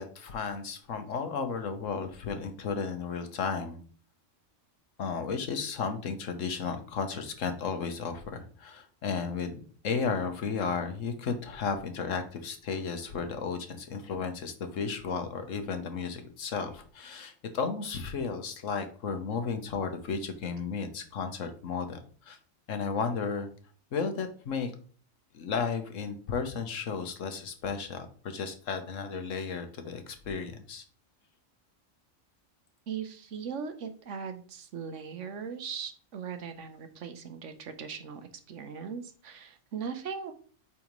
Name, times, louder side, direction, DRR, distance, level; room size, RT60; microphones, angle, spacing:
voice 1, 0.0-3.8 5.0-22.4 22.7-23.5 23.9-24.7 25.3-30.8, left 5 dB, 85° left, 7 dB, 1.4 m, -34 dB
voice 2, 32.9-40.3, right 6 dB, 75° right, 8 dB, 1.2 m, -39 dB
8.7 x 4.2 x 3.1 m, 0.43 s
omnidirectional pair, 1.3 m